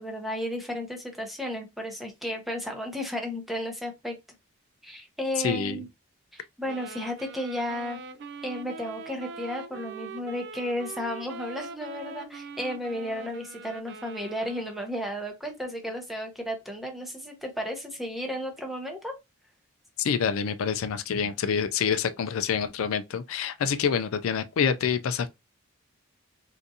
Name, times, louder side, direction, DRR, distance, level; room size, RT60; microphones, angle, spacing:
voice 1, 0.0-4.2 4.8-5.9 6.3-8.0 8.4-19.1, equal, ahead, 0.7 m, -33 dB
voice 2, 5.4-5.8 20.0-25.3, left 7 dB, 70° left, 0.4 m, -27 dB
sound 1, 6.7-15.0, right 4 dB, 55° right, 0.4 m, -42 dB
3.8 x 2.5 x 2.6 m
head